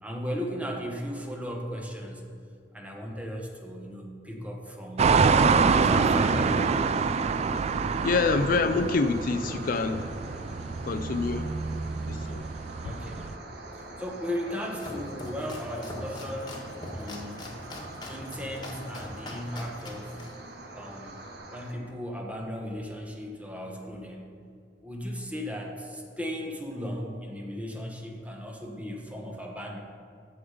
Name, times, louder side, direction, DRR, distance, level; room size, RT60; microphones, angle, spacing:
voice 1, 0.0-2.3 2.7-6.8 12.7-13.4 13.7-17.4 18.1-20.2 20.7-21.2 21.5-24.4 24.8-29.8, equal, 10° right, 0 dB, 1.1 m, -36 dB
sound 1, 5.0-13.3, right 5 dB, 35° right, 0.3 m, -26 dB
sound 2, 6.4-21.7, right 2 dB, 65° right, 1.1 m, -44 dB
voice 2, 8.0-10.0 10.9-11.5 12.0-12.5, left 4 dB, 50° left, 8 dB, 0.4 m, -26 dB
Domestic sounds home sounds, 14.4-21.4, left 1 dB, 25° left, 1.5 m, -42 dB
14.0 x 5.4 x 5.0 m, 2.3 s
head